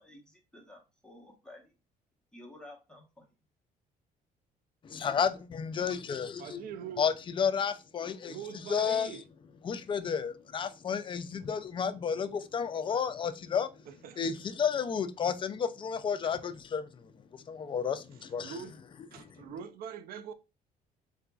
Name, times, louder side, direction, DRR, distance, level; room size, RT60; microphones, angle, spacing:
voice 1, 0.0-1.7 2.3-3.3, left 1 dB, 5° left, 0.9 m, -52 dB
voice 2, 4.8-6.7 7.0-8.4 8.7-9.2 9.6-13.7 14.2-18.0 18.3-18.5 19.1-19.3, left 7 dB, 30° left, 0.3 m, -32 dB
voice 3, 6.4-7.1 8.3-9.2 13.9-14.4 16.2-16.3 18.4-18.7 19.1-20.3, right 7 dB, 60° right, 0.4 m, -43 dB
3.8 x 2.4 x 2.3 m
cardioid pair, 110°, 17 cm